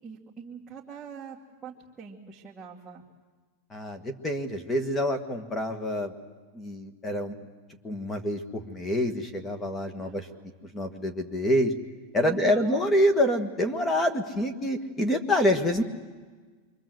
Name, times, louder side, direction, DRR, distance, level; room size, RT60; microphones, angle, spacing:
voice 1, 0.0-3.0 10.0-10.2 12.2-12.9, right 6 dB, 5° right, -7 dB, 2.4 m, -42 dB
voice 2, 3.7-6.1 6.5-7.4 7.8-10.3 10.7-11.7 12.1-15.8, equal, 15° left, 9 dB, 1.7 m, -26 dB
28.0 x 24.0 x 7.9 m, 1.4 s
supercardioid pair, 155°, 0 cm